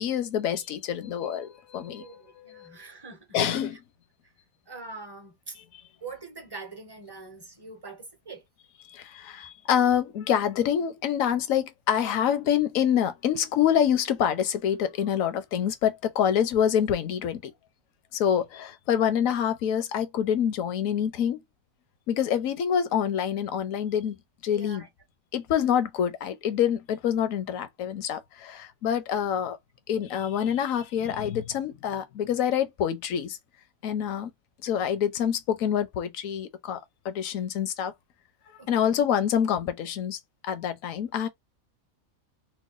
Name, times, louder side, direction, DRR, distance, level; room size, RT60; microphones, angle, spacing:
voice 1, 0.0-2.7 3.3-3.8 8.9-17.5 18.1-21.4 22.1-24.2 24.4-24.8 25.3-29.6 29.9-33.4 33.8-34.3 34.6-37.9 38.7-41.3, left 9 dB, 80° left, 1.0 m, -26 dB
voice 2, 2.0-3.4 3.7-3.8 4.7-5.6 6.0-8.4 24.5-24.9 38.6-39.0, right 3 dB, 25° right, 0.6 m, -43 dB
3.0 x 2.2 x 3.8 m
omnidirectional pair, 1.4 m